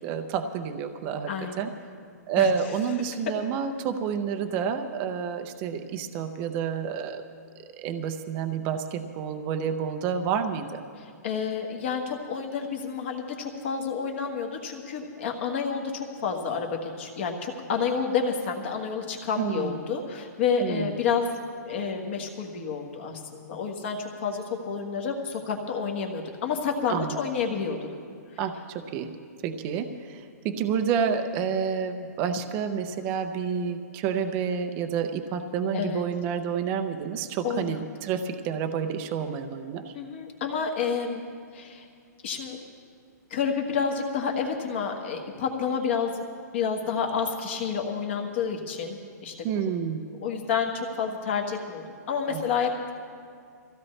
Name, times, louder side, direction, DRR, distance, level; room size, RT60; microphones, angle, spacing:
voice 1, 0.0-1.3 1.6-1.7 2.3-7.2 7.8-10.8 19.4-19.8 20.6-20.9 26.9-27.2 28.4-28.5 28.9-29.1 29.4-39.9 49.4-50.1 52.3-52.4, right 7 dB, 20° right, 7 dB, 0.6 m, -29 dB
voice 2, 1.3-1.7 2.4-2.5 11.0-21.3 21.6-27.8 35.7-36.0 37.4-37.9 39.9-41.2 41.5-41.9 42.2-42.6 43.3-46.2 46.5-49.7 50.2-52.9, left 6 dB, 40° left, 2 dB, 1.4 m, -29 dB
23.5 x 15.5 x 3.3 m, 2.2 s
hypercardioid pair, 170°, 10 cm